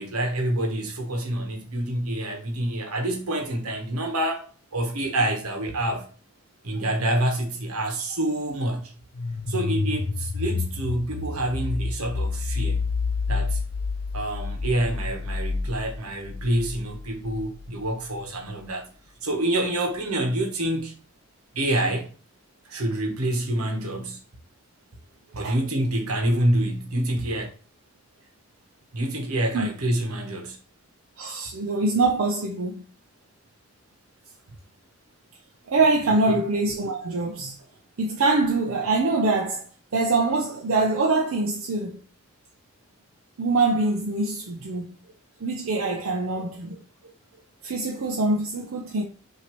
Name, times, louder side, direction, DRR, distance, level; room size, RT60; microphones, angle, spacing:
voice 1, 0.0-6.1 6.6-9.0 9.5-12.9 13.3-13.6 14.1-18.9 19.2-20.9 21.5-22.1 22.7-24.2 25.3-27.5 28.9-30.6 36.3-36.4, right 1 dB, 90° right, 1.1 m, -27 dB
sound 1, 9.1-17.8, left 4 dB, 90° left, 0.6 m, -29 dB
voice 2, 31.2-32.8 35.7-37.6 38.0-39.6 39.9-42.0 43.4-44.9 45.4-46.8 47.6-49.0, right 3 dB, 70° right, 0.6 m, -24 dB
5.8 x 2.8 x 3.0 m
head